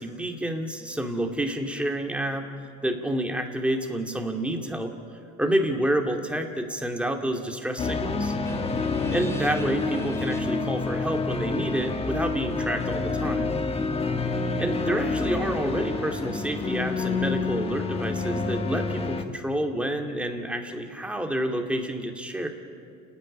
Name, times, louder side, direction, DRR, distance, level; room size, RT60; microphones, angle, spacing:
voice 1, 0.0-2.5 2.8-4.9 5.4-8.3 9.1-13.6 14.6-22.5, right 1 dB, 5° right, 3 dB, 2.6 m, -29 dB
sound 1, 7.8-19.2, left 3 dB, 30° left, 1.6 m, -28 dB
sound 2, 8.4-16.3, left 2 dB, 15° left, 1.6 m, -46 dB
30.0 x 10.0 x 9.9 m, 2.3 s
supercardioid pair, 95°, 21 cm